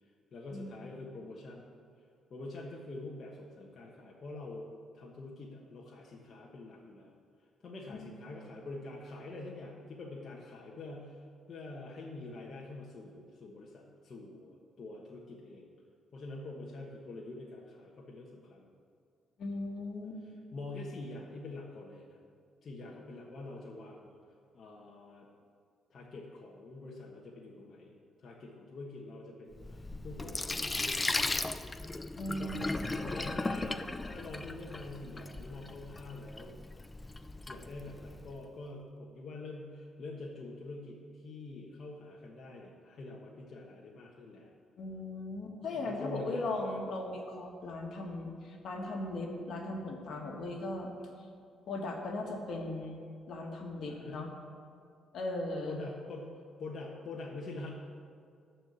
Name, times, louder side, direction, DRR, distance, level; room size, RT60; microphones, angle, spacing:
voice 1, 0.3-1.7 2.3-4.7 4.9-7.1 7.6-15.6 16.1-18.7 20.5-22.2 22.6-24.2 24.5-25.3 25.9-27.9 28.2-31.6 32.4-36.6 37.5-44.5 45.8-46.4 53.9-54.3 55.7-57.7, left 2 dB, 50° left, -3 dB, 1.3 m, -45 dB
voice 2, 19.4-20.2 32.2-32.9 44.8-50.9 51.7-54.3 55.1-55.8, left 2 dB, 65° left, 1 dB, 1.7 m, -38 dB
Sink (filling or washing), 29.5-38.3, left 2 dB, 20° left, 0.4 m, -37 dB
13.5 x 4.6 x 8.2 m, 2.2 s
cardioid pair, 90°, 0 cm